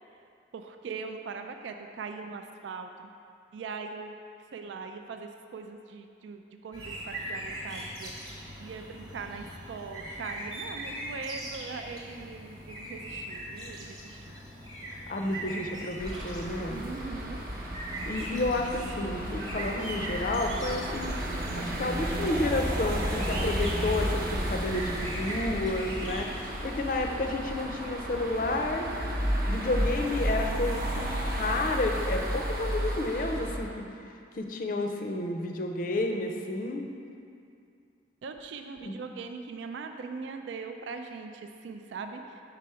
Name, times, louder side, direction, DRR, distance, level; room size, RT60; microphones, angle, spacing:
voice 1, 0.5-3.1 3.5-4.2 4.5-8.1 8.6-14.3 16.7-17.4 38.2-42.2, right 4 dB, 75° right, 6 dB, 0.3 m, -40 dB
sound 1, 6.7-26.3, right 1 dB, 25° right, 1.0 m, -41 dB
voice 2, 15.1-16.8 18.1-21.1 21.6-28.9 29.5-33.8 34.3-36.8 38.8-38.9, left 2 dB, 50° left, 3 dB, 0.5 m, -31 dB
sound 2, 16.0-33.6, equal, 50° right, 0.8 m, -32 dB
sound 3, 17.5-25.1, right 2 dB, ahead, 0.6 m, -43 dB
5.6 x 5.0 x 4.7 m, 2.4 s
head